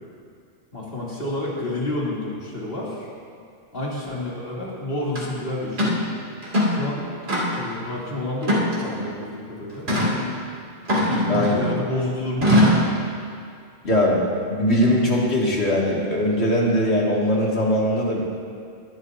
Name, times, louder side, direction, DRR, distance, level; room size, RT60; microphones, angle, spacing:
voice 1, 0.7-3.1 3.7-6.0 6.6-7.1 7.5-9.8 11.3-12.8, left 1 dB, 60° left, -6 dB, 3.0 m, -29 dB
sound 1, 5.2-5.3 5.8-6.0 6.4-6.8 7.3-7.7 8.4-9.1 9.9-10.2 10.9-11.8 12.4-12.9, left 1 dB, 75° right, 2.8 m, -20 dB
voice 2, 13.8-14.2 14.5-18.2, equal, 85° left, -4 dB, 2.4 m, -20 dB
20.5 x 11.5 x 2.7 m, 2.3 s
omnidirectional pair, 1.1 m